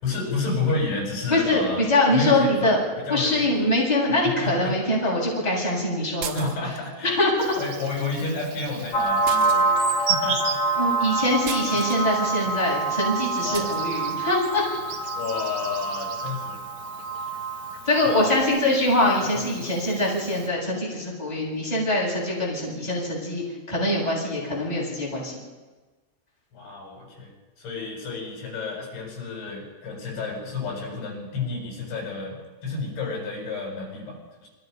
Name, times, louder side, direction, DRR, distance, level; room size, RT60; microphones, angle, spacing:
voice 1, 0.0-1.9 2.1-2.8 3.1-3.7 4.4-4.7 6.3-7.2 7.6-10.8 13.4-13.8 15.1-16.6 18.0-18.4 19.3-19.7 26.5-27.3 27.6-34.5, left 3 dB, 65° left, -1 dB, 9.8 m, -31 dB
voice 2, 1.3-2.8 3.1-6.5 7.0-7.4 10.7-14.6 17.8-25.4, left 1 dB, 10° left, -4 dB, 7.8 m, -23 dB
sound 1, 6.2-6.9 9.3-10.0 11.5-12.1 13.5-13.8, right 9 dB, 80° right, 2.0 m, -36 dB
Insect, 7.4-20.5, right 6 dB, 55° right, 2.5 m, -37 dB
sound 2, 8.9-18.4, right 3 dB, 35° left, 2.5 m, -26 dB
28.0 x 25.0 x 5.6 m, 1.3 s
omnidirectional pair, 5.5 m